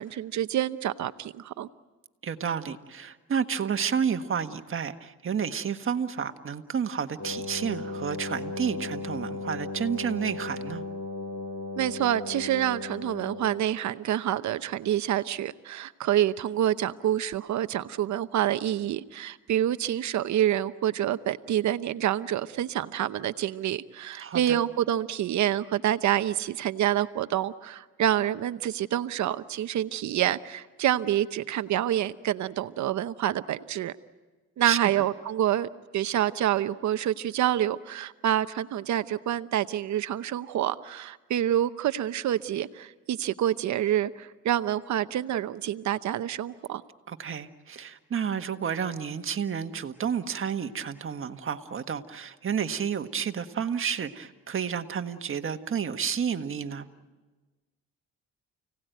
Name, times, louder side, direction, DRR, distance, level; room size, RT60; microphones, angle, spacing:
voice 1, 0.0-1.7 11.8-33.9 34.6-46.8, right 11 dB, 70° right, 13 dB, 0.9 m, -27 dB
voice 2, 2.2-10.8 24.2-24.6 34.6-35.0 47.1-56.9, right 7 dB, 45° right, 7 dB, 1.6 m, -31 dB
Wind instrument woodwind instrument, 7.2-13.8, left 2 dB, 65° left, 6.5 m, -36 dB
29.5 x 18.0 x 9.2 m, 1.3 s
cardioid pair, 90°, 30 cm